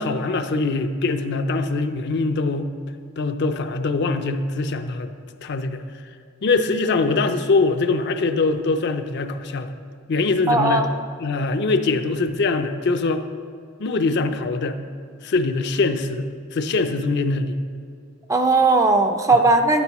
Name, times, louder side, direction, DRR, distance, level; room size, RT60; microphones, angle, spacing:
voice 1, 0.0-2.7 3.2-5.1 5.4-5.8 6.4-9.8 10.1-10.8 11.2-13.2 13.8-14.8 15.2-17.6, left 3 dB, 50° left, 8 dB, 0.4 m, -23 dB
voice 2, 10.5-10.9 18.3-19.8, right 2 dB, 15° right, 5 dB, 0.4 m, -17 dB
10.5 x 9.1 x 3.0 m, 2.3 s
head